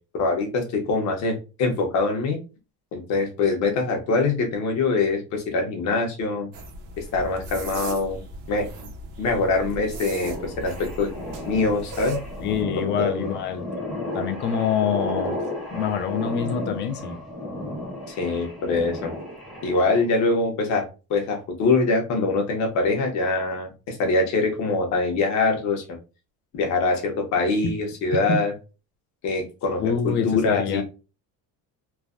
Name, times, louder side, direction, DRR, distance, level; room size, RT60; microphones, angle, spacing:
voice 1, 0.2-2.4 2.9-6.5 7.0-8.7 9.2-11.2 11.5-12.2 12.8-13.3 18.1-19.1 19.6-25.8 26.5-28.5 29.2-30.8, left 3 dB, 50° left, 0.9 m, -24 dB
sound 1, 6.5-12.6, right 2 dB, 55° right, 0.8 m, -37 dB
sound 2, 10.2-20.1, left 1 dB, ahead, 0.8 m, -34 dB
voice 2, 12.4-13.7 14.1-15.4 15.7-17.2 27.6-27.7 28.3-28.4 29.8-30.8, left 7 dB, 30° left, 0.4 m, -25 dB
3.2 x 2.2 x 2.4 m
cardioid pair, 175°, 36 cm